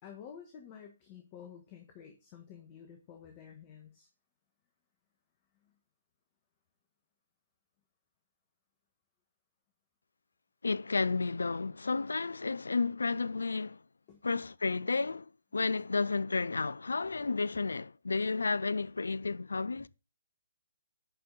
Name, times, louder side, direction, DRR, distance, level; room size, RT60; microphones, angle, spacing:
voice 1, 0.0-4.1 14.1-14.2, left 8 dB, 30° left, 1.4 m, -51 dB
voice 2, 10.6-13.8 14.2-19.9, left 4 dB, 75° left, 0.4 m, -32 dB
11.0 x 5.1 x 3.8 m
figure-of-eight pair, 140°, 0 cm